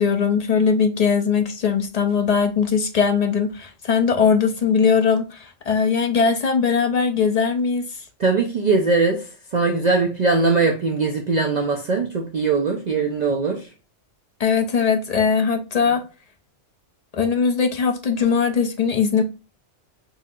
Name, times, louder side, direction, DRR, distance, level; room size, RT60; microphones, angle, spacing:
voice 1, 0.0-7.9 14.4-16.0 17.1-19.2, left 6 dB, 60° left, 0.4 m, -20 dB
voice 2, 8.2-13.7, right 4 dB, 50° right, 0.5 m, -21 dB
4.2 x 2.7 x 2.3 m
omnidirectional pair, 1.2 m